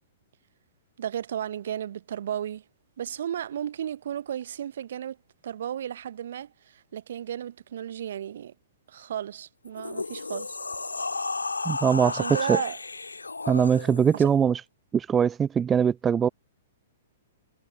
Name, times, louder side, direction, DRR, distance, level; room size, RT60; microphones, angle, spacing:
voice 1, 1.0-2.6 3.0-5.2 5.4-8.5 8.9-10.6 12.0-12.8 14.1-14.3, right 10 dB, 60° right, 0.6 m, -34 dB
sound 1, 9.6-14.2, left 3 dB, 80° left, 1.5 m, -33 dB
voice 2, 11.7-12.1 12.5-12.6 13.5-14.6 14.9-16.3, right 7 dB, 15° right, 0.5 m, -22 dB
figure-of-eight pair, 110°, 0 cm